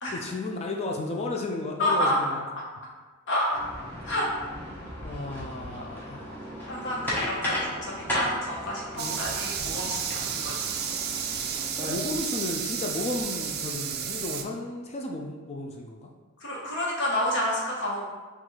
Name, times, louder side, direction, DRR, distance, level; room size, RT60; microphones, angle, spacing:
voice 1, 0.1-2.4 5.0-6.4 7.5-7.6 9.0-9.2 11.1-16.1, left 2 dB, 30° left, 1 dB, 0.3 m, -34 dB
voice 2, 1.8-2.2 3.3-3.5 4.0-4.3 6.7-10.5 16.4-18.0, left 1 dB, 55° left, -4 dB, 1.1 m, -29 dB
sound 1, 3.5-11.9, left 1 dB, 10° left, 0.7 m, -35 dB
sound 2, 9.0-14.4, right 8 dB, 45° right, 0.3 m, -32 dB
4.0 x 2.3 x 4.5 m, 1.3 s
head